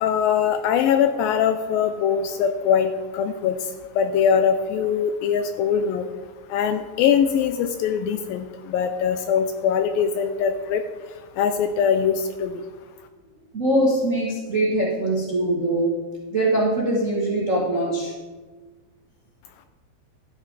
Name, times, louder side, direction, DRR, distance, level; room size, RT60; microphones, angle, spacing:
voice 1, 0.0-3.6 4.0-6.1 6.5-10.8 11.4-12.1 12.4-12.5, left 7 dB, 80° left, 8 dB, 2.1 m, -22 dB
voice 2, 13.5-15.9 16.3-18.1, right 1 dB, 80° right, -5 dB, 0.7 m, -22 dB
12.5 x 9.3 x 4.0 m, 1.4 s
omnidirectional pair, 4.5 m